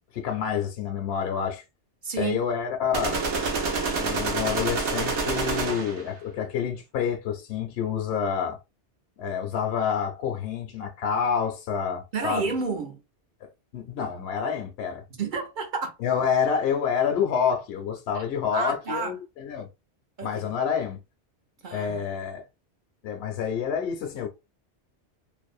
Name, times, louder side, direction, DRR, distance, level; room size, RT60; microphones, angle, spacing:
voice 1, 0.1-1.6 2.2-3.2 4.0-8.6 9.2-12.5 13.4-15.0 16.0-19.7 20.2-21.0 21.7-22.4 23.0-24.3, left 7 dB, 70° left, 0.8 m, -28 dB
voice 2, 2.0-2.4 12.1-13.0 15.1-16.0 18.1-18.2 18.5-19.1 20.2-20.4 21.6-22.0, right 4 dB, 50° right, 0.7 m, -30 dB
sound 1, 2.9-6.1, right 4 dB, 75° right, 1.0 m, -27 dB
2.6 x 2.0 x 2.4 m
omnidirectional pair, 1.2 m